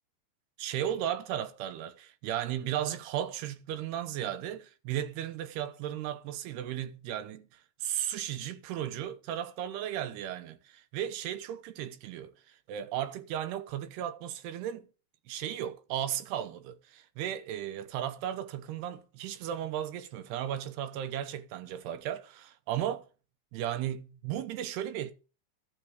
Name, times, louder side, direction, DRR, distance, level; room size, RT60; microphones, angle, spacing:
voice 1, 0.6-14.9 15.3-23.1 23.5-25.1, right 11 dB, 85° right, 3.0 m, -35 dB
12.5 x 4.9 x 8.1 m
omnidirectional pair, 4.6 m